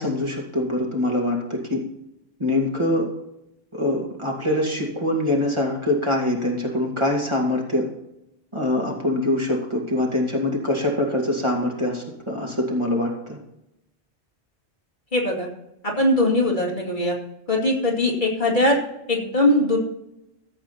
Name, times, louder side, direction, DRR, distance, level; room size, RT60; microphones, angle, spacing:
voice 1, 0.0-1.8 2.4-3.1 3.7-7.9 8.5-13.4, left 1 dB, 25° right, -2 dB, 2.4 m, -24 dB
voice 2, 15.1-15.5 15.8-17.1 17.5-18.8 19.1-19.8, left 1 dB, 45° left, -1 dB, 2.5 m, -20 dB
15.0 x 8.0 x 4.2 m, 0.85 s
omnidirectional pair, 1.1 m